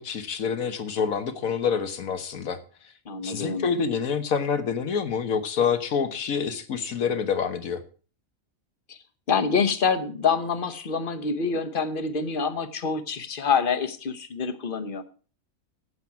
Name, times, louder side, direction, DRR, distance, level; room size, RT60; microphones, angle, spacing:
voice 1, 0.0-2.6 3.2-7.8, left 6 dB, 85° left, 9 dB, 1.5 m, -27 dB
voice 2, 3.1-3.7 8.9-9.0 9.3-15.0, left 5 dB, 45° left, 9 dB, 1.1 m, -26 dB
9.7 x 7.8 x 5.8 m, 0.39 s
omnidirectional pair, 1.4 m